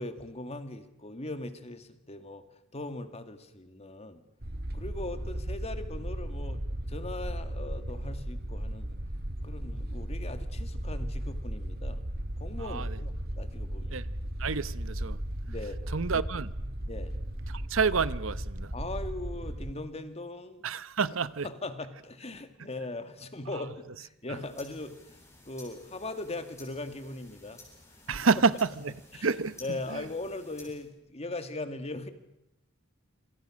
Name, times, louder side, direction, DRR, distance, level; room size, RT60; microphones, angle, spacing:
voice 1, 0.0-2.4 2.7-4.2 4.7-6.6 6.9-9.0 9.4-12.0 12.4-14.0 15.5-15.8 16.9-17.1 18.7-20.6 21.4-24.9 25.5-27.6 28.1-28.3 29.1-29.3 29.6-32.1, left 2 dB, 30° left, 2.2 m, -39 dB
sound 1, 4.4-19.7, right 1 dB, 50° right, 2.0 m, -36 dB
voice 2, 12.6-13.0 13.9-14.0 14.4-15.2 15.9-16.5 17.5-18.7 20.6-21.5 23.5-23.6 24.3-24.4 28.1-29.0 29.2-29.6 29.9-30.0, right 5 dB, 70° right, 0.9 m, -29 dB
sound 2, 24.2-30.9, left 2 dB, 15° left, 7.7 m, -54 dB
27.0 x 26.5 x 6.4 m
head